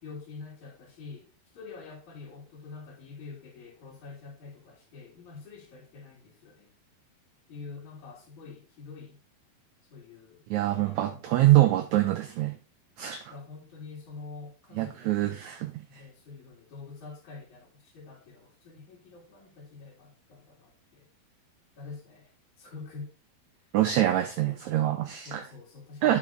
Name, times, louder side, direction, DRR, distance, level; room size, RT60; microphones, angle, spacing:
voice 1, 0.0-6.7 7.5-9.2 9.9-10.4 10.7-11.9 13.3-15.5 15.9-21.1 21.8-22.3 22.6-23.1 24.4-24.6 25.2-26.2, left 4 dB, 55° left, 3.6 m, -46 dB
voice 2, 10.5-12.6 13.0-13.2 14.8-15.7 23.7-25.4 26.0-26.2, right 14 dB, 90° right, 1.6 m, -24 dB
8.9 x 5.9 x 3.8 m
omnidirectional pair, 4.1 m